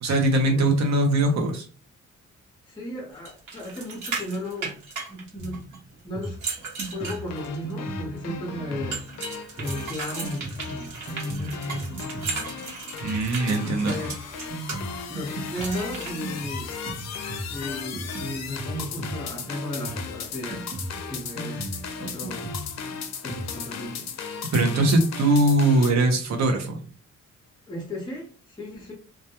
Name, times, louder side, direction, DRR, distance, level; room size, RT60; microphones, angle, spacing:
voice 1, 0.0-1.7 13.0-13.9 24.5-26.8, right 2 dB, 65° right, 3 dB, 0.6 m, -21 dB
voice 2, 2.7-4.8 5.1-5.7 6.0-6.4 6.9-9.0 9.6-12.3 13.4-14.2 15.1-16.8 17.4-20.7 21.1-21.7 22.0-22.5 23.2-24.2 24.5-24.7 27.7-28.9, left 1 dB, 15° left, -2 dB, 0.6 m, -35 dB
sound 1, 3.3-5.8 6.2-7.7 8.9-14.8 15.6-16.1, right 4 dB, 80° right, 1.0 m, -36 dB
Drum kit, 5.4-23.6, right 2 dB, 25° right, 0.7 m, -38 dB
sound 2, 7.0-25.9, left 6 dB, 60° left, 0.5 m, -37 dB
2.2 x 2.1 x 2.8 m, 0.38 s
cardioid pair, 120°, 30 cm